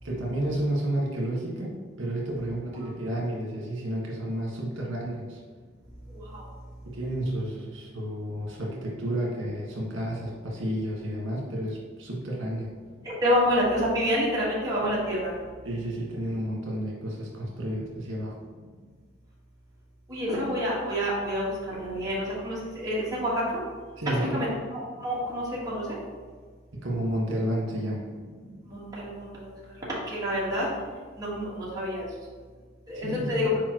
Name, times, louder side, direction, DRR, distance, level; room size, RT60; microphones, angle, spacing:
voice 1, 0.0-5.4 6.8-12.7 15.6-18.4 24.0-24.5 26.7-28.1 32.9-33.4, right 1 dB, 70° right, -4 dB, 1.6 m, -31 dB
voice 2, 6.1-6.4 13.0-15.3 20.1-23.4 24.0-26.0 28.4-29.5 30.1-30.7 31.2-32.1 32.9-33.5, equal, 20° right, -8 dB, 1.6 m, -28 dB
7.1 x 4.6 x 3.1 m, 1.6 s
head